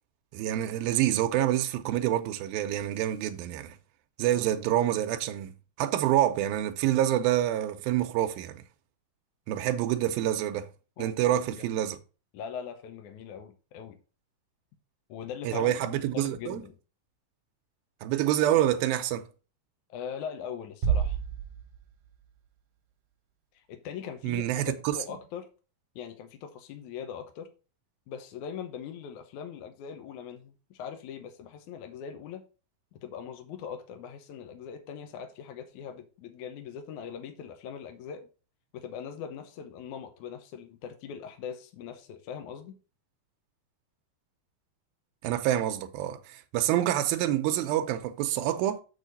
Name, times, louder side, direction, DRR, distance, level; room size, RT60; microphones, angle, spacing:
voice 1, 0.3-3.8 4.2-8.6 9.5-10.7 11.0-12.0 15.4-16.6 18.0-19.3 24.2-25.0 45.2-48.8, right 12 dB, 85° right, 2.5 m, -27 dB
voice 2, 12.3-14.0 15.1-16.6 19.9-21.2 23.5-25.5 26.0-27.5 28.1-32.4 32.9-38.3 38.7-42.8, left 8 dB, 70° left, 2.0 m, -41 dB
sound 1, 20.8-22.3, right 7 dB, 65° right, 1.7 m, -29 dB
7.0 x 6.5 x 3.9 m
omnidirectional pair, 4.3 m